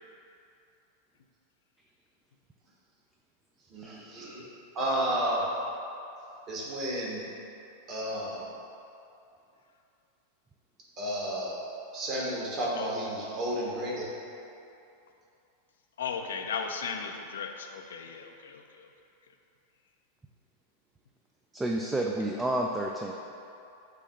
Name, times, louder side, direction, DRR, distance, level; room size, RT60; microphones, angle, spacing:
voice 1, 3.7-4.4 4.7-5.5 6.5-7.2 7.9-8.5 11.0-11.7 11.9-14.1, right 1 dB, 35° right, -5 dB, 1.4 m, -32 dB
voice 2, 16.0-18.6, left 6 dB, 65° left, 4 dB, 0.4 m, -36 dB
voice 3, 21.5-23.1, right 1 dB, 10° right, 0 dB, 0.3 m, -30 dB
6.5 x 2.8 x 5.2 m, 2.7 s
figure-of-eight pair, 90°, 0 cm